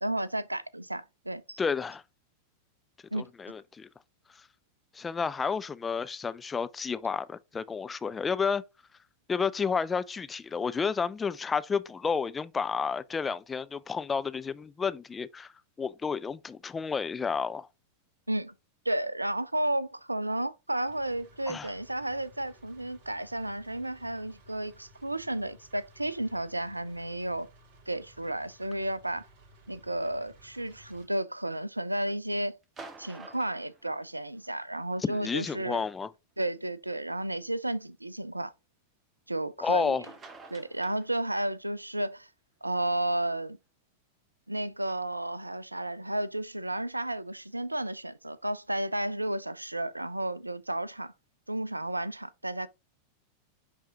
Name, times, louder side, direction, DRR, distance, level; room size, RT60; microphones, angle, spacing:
voice 1, 0.0-1.6 3.1-3.3 18.3-18.5 18.9-27.5 27.9-29.3 29.7-32.5 33.0-35.8 36.4-38.5 39.3-40.0 40.5-42.3 42.6-43.6 44.5-51.1 51.5-52.7, right 1 dB, 85° right, 0.3 m, -32 dB
voice 2, 1.6-2.0 3.1-3.9 4.9-8.6 9.3-15.5 15.8-17.7 21.5-21.7 35.0-36.1 39.6-40.0, left 5 dB, 15° left, 0.4 m, -31 dB
sound 1, 20.8-31.1, right 1 dB, 45° right, 4.5 m, -57 dB
sound 2, 32.6-34.6 35.8-36.0 36.9-37.0 39.8-39.9 40.0-41.5 44.9-45.0, right 3 dB, 20° right, 1.0 m, -49 dB
10.0 x 3.5 x 2.8 m
figure-of-eight pair, 90°, 0 cm